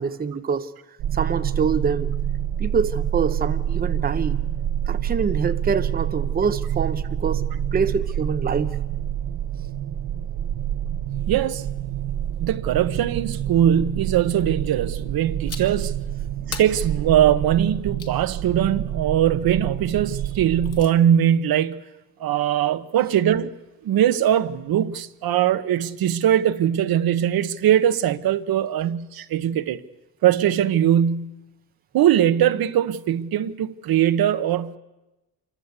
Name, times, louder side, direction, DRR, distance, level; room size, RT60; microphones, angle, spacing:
voice 1, 0.0-2.1 2.6-4.4 4.9-7.4 7.7-8.8, right 5 dB, 25° right, 0.9 m, -25 dB
sound 1, 1.0-20.8, right 10 dB, 85° right, 1.6 m, -27 dB
voice 2, 11.3-11.6 12.4-16.0 16.5-21.8 22.2-23.5 23.8-29.8 30.2-31.3 31.9-34.8, right 10 dB, 65° right, 1.2 m, -21 dB
sound 2, 15.5-15.9 16.5-18.2 20.3-20.9, left 6 dB, 40° left, 2.1 m, -39 dB
27.0 x 23.5 x 8.2 m
cardioid pair, 140°, 38 cm